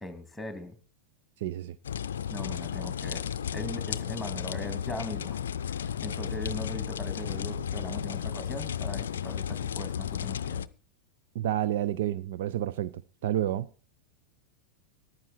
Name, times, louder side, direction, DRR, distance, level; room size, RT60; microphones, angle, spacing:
voice 1, 0.0-0.8 2.3-3.2 3.5-10.6, left 1 dB, ahead, 2.8 m, -40 dB
voice 2, 1.4-1.8 11.3-13.7, right 12 dB, 55° right, 0.6 m, -30 dB
sound 1, 1.8-10.7, left 8 dB, 65° left, 0.5 m, -33 dB
14.5 x 11.5 x 4.5 m
figure-of-eight pair, 90°, 0 cm